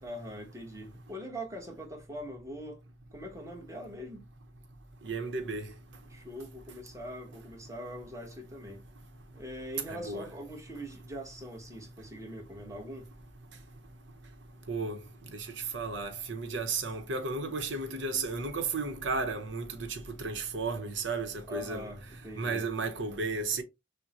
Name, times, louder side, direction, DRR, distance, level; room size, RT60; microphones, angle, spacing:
voice 1, 0.0-2.8 3.1-4.2 6.1-8.8 9.3-13.1 21.5-22.6, equal, 15° right, 1.2 m, -42 dB
voice 2, 5.0-5.7 9.9-10.3 14.7-15.0 15.7-21.9 22.4-23.6, right 3 dB, 85° right, 0.9 m, -33 dB
6.5 x 2.2 x 3.0 m
head